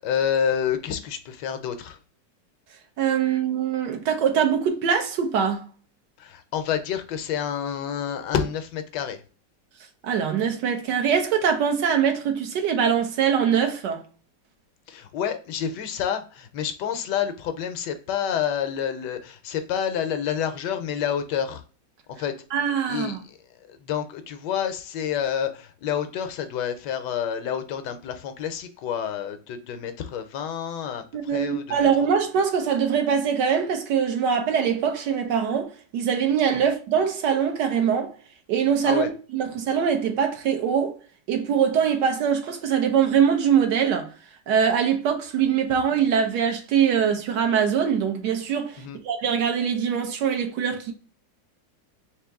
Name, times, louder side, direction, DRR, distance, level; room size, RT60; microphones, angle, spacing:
voice 1, 0.0-2.0 6.2-9.2 14.9-21.6 22.2-22.3 22.9-23.4 23.7-31.9 38.8-39.1 48.8-49.0, left 8 dB, 75° left, 1.2 m, -28 dB
voice 2, 3.0-5.7 10.0-14.0 22.5-23.2 31.1-38.1 38.5-41.0 41.3-44.1 44.5-50.9, right 7 dB, 70° right, 1.3 m, -23 dB
3.6 x 2.9 x 3.4 m
omnidirectional pair, 2.0 m